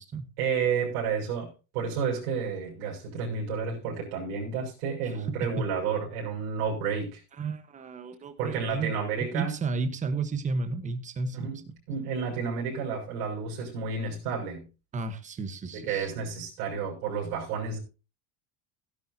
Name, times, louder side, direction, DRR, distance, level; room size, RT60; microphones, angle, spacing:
voice 1, 0.4-7.2 8.4-9.5 11.3-14.7 15.7-17.8, right 6 dB, 85° right, 6.3 m, -31 dB
voice 2, 7.4-8.9 9.3-11.5 14.9-16.1, right 4 dB, 15° right, 1.2 m, -32 dB
17.0 x 10.5 x 2.8 m
cardioid pair, 175°, 44 cm